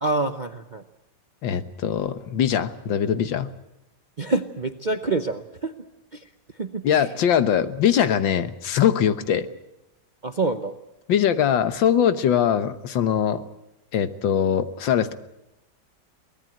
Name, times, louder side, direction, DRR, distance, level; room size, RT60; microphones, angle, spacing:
voice 1, 0.0-0.8 4.2-5.7 6.6-6.8 10.2-10.7, right 3 dB, 45° right, 7 dB, 0.6 m, -26 dB
voice 2, 1.4-3.5 6.8-9.5 11.1-13.4 13.9-15.1, left 9 dB, 85° left, 11 dB, 1.8 m, -22 dB
23.5 x 18.5 x 7.7 m, 0.90 s
omnidirectional pair, 2.0 m